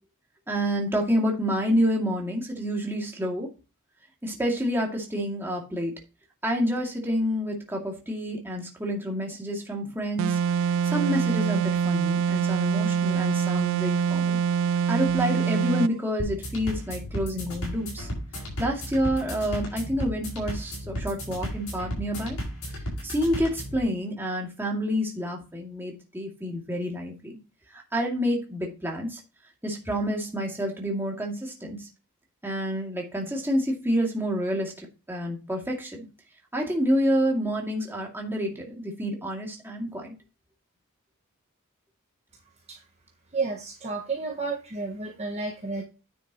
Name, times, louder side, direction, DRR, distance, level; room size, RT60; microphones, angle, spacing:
voice 1, 0.5-3.5 4.2-5.9 6.4-10.4 10.8-14.4 14.9-18.1 18.6-22.4 23.0-27.4 27.7-29.2 29.6-31.9 32.4-34.7 35.1-36.0 36.5-40.1, equal, 10° right, -1 dB, 2.3 m, -28 dB
sound 1, 10.2-16.0, right 6 dB, 60° right, 0.3 m, -24 dB
sound 2, 16.2-23.8, equal, 75° left, 5.4 m, -34 dB
voice 2, 43.3-45.8, right 4 dB, 30° right, -3 dB, 1.6 m, -31 dB
9.8 x 7.1 x 2.9 m, 0.30 s
head